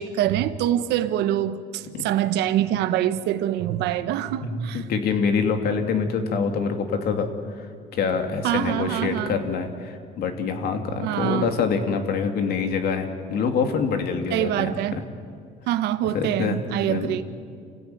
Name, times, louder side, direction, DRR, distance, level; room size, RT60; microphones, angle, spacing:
voice 1, 0.0-4.8 8.4-9.3 11.0-11.5 14.3-15.0 15.7-17.2, right 12 dB, 85° right, 12 dB, 1.2 m, -25 dB
voice 2, 4.4-7.3 7.6-7.7 7.9-15.0 16.1-16.6 16.9-17.2, left 5 dB, 70° left, 5 dB, 2.8 m, -25 dB
27.0 x 16.5 x 9.3 m, 2.3 s
cardioid pair, 110°, 17 cm